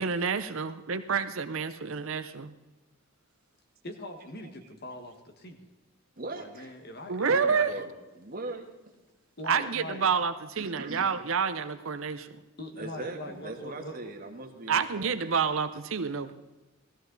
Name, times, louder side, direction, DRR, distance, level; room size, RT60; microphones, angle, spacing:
voice 1, 0.0-2.5 7.1-7.7 9.5-12.4 14.7-16.3, right 6 dB, 65° right, 10 dB, 0.7 m, -28 dB
voice 2, 3.8-5.6 6.3-7.8 9.4-10.1 12.6-14.1, left 1 dB, 50° left, 6 dB, 1.6 m, -42 dB
voice 3, 6.2-6.7 7.3-8.7 10.6-11.1 12.7-15.3, right 2 dB, 40° right, 3 dB, 1.6 m, -40 dB
17.5 x 14.0 x 4.0 m, 1.1 s
head